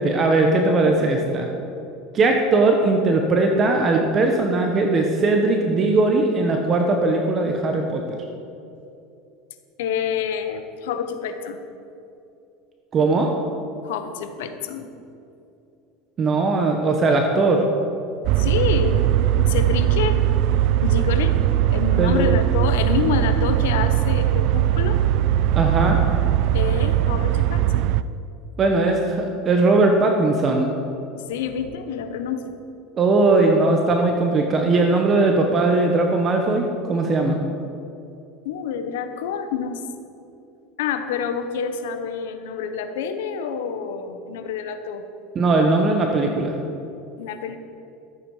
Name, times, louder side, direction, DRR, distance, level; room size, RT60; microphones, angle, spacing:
voice 1, 0.0-1.5 2.1-8.2 12.9-13.3 16.2-17.7 22.0-22.3 25.5-26.0 28.6-30.7 33.0-37.4 45.3-46.5, right 3 dB, 30° right, 3 dB, 1.0 m, -19 dB
voice 2, 9.8-11.6 13.8-14.9 18.4-19.0 19.4-20.2 20.8-21.3 21.7-25.0 26.5-27.9 31.3-32.5 38.4-39.8 40.8-45.0 47.2-47.6, left 7 dB, 85° left, 8 dB, 0.9 m, -27 dB
sound 1, 18.2-28.0, right 12 dB, 60° right, 0.3 m, -20 dB
13.5 x 8.2 x 4.8 m, 2.7 s
supercardioid pair, 125°, 0 cm